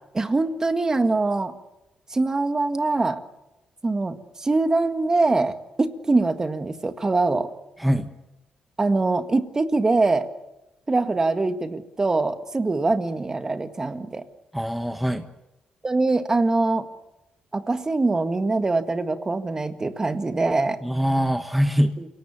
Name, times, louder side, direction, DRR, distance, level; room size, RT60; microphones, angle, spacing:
voice 1, 0.1-1.5 2.1-3.2 3.8-7.5 8.8-10.3 10.9-14.2 15.8-16.8 17.5-20.8 22.0-22.1, right 3 dB, 25° right, 9 dB, 1.7 m, -23 dB
voice 2, 7.8-8.1 14.5-15.3 20.8-21.9, equal, 5° right, 7 dB, 1.2 m, -23 dB
28.5 x 17.5 x 7.1 m, 0.96 s
cardioid pair, 100°, 2 cm